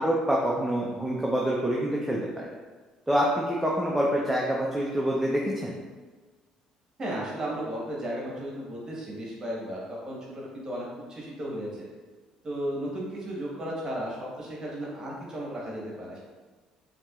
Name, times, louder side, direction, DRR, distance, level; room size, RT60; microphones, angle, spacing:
voice 1, 0.0-2.5 3.1-5.7, equal, 5° right, -4 dB, 0.5 m, -26 dB
voice 2, 7.0-11.9 12.4-16.2, right 1 dB, 35° right, -4 dB, 1.2 m, -35 dB
5.8 x 2.8 x 2.4 m, 1.3 s
cardioid pair, 105°, 2 cm